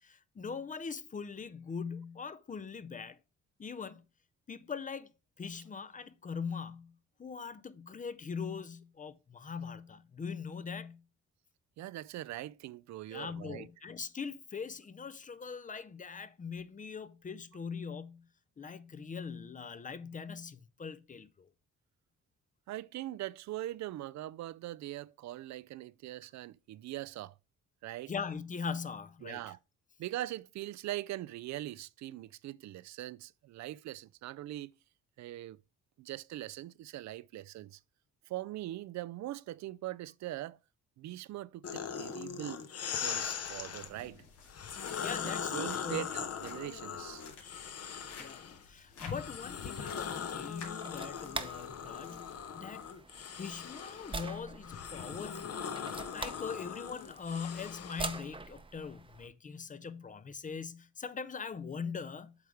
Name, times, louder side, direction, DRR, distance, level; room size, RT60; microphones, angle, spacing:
voice 1, 0.0-3.2 3.6-4.0 4.5-5.1 5.4-6.9 7.2-11.0 13.1-18.3 18.6-21.5 28.1-29.6 45.0-46.1 48.2-52.9 53.4-55.6 56.1-62.3, left 6 dB, 25° left, 0.6 m, -41 dB
voice 2, 11.8-13.7 22.7-27.3 27.8-28.1 29.2-29.6 30.0-34.7 35.2-35.6 36.0-37.8 38.3-40.6 41.0-42.6 43.0-44.2 45.2-47.2, right 15 dB, 65° right, 0.4 m, -41 dB
sound 1, 41.6-43.9 44.5-48.6 49.0-58.2, left 7 dB, 55° left, 1.0 m, -40 dB
sound 2, 43.1-52.4, left 5 dB, 85° left, 2.6 m, -54 dB
sound 3, 50.0-59.3, right 3 dB, 15° right, 0.7 m, -45 dB
8.0 x 3.5 x 4.8 m
cardioid pair, 90°, 30 cm